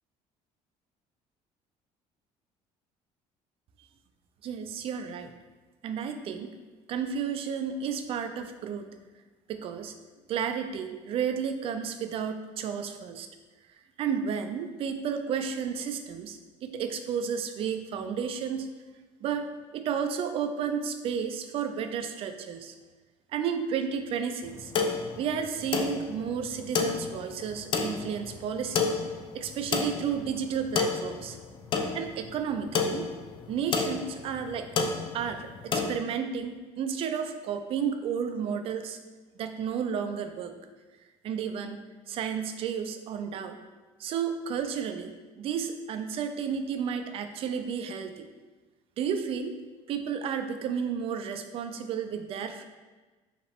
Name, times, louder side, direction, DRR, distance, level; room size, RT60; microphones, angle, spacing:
voice 1, 4.4-5.3 5.8-6.5 6.9-8.9 9.5-9.9 10.3-13.3 14.0-18.7 19.2-19.5 19.7-22.7 23.3-24.7 25.2-28.9 29.3-31.4 31.9-33.1 33.5-34.7 35.1-39.0 39.4-40.5 41.2-41.8 42.1-43.6 44.0-48.3 49.0-49.6 49.9-52.6, right 7 dB, 45° right, 7 dB, 0.4 m, -32 dB
sound 1, 24.4-35.9, left 5 dB, 40° left, 0.4 m, -31 dB
4.8 x 2.9 x 3.4 m, 1.3 s
cardioid pair, 160°, 13 cm